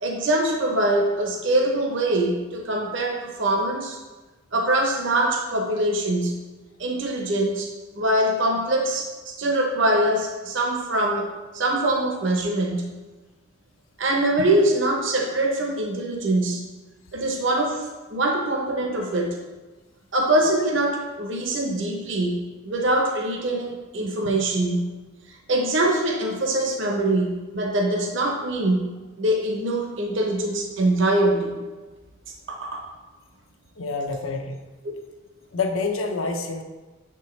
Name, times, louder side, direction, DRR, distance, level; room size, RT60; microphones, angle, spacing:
voice 1, 0.0-4.0 4.5-6.4 6.8-7.7 8.0-11.3 11.5-12.9 14.0-16.6 17.1-19.3 20.1-24.9 25.5-28.9 29.2-31.6 32.5-32.8 34.8-34.9, right 1 dB, 60° right, 1 dB, 0.8 m, -23 dB
voice 2, 33.8-34.6 35.5-36.6, left 4 dB, 85° left, 4 dB, 0.7 m, -27 dB
6.9 x 4.5 x 3.1 m, 1.2 s
head